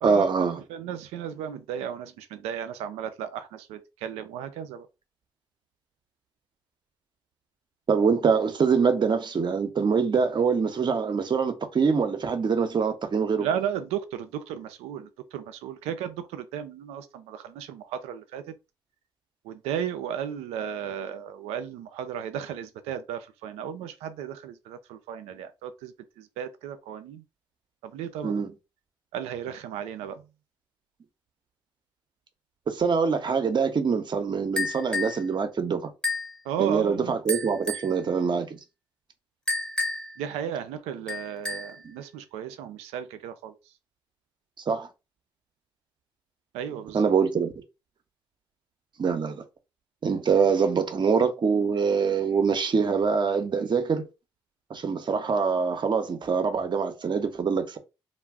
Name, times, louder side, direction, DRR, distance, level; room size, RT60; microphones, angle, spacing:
voice 1, 0.0-0.6 7.9-13.5 28.2-28.5 32.7-35.9 36.6-38.6 44.7-44.9 46.9-47.5 49.0-49.4 50.0-54.1 54.7-57.8, right 5 dB, 50° right, 0.7 m, -24 dB
voice 2, 0.7-4.9 13.4-18.4 19.4-27.2 27.8-28.3 29.1-30.2 36.5-37.2 40.2-43.5 46.5-47.1, right 9 dB, 80° right, 0.4 m, -34 dB
sound 1, 34.6-35.2 36.0-36.4 37.3-37.9 39.5-40.2 41.1-41.8, left 2 dB, 10° left, 0.8 m, -30 dB
2.2 x 2.1 x 3.4 m
hypercardioid pair, 45°, 10 cm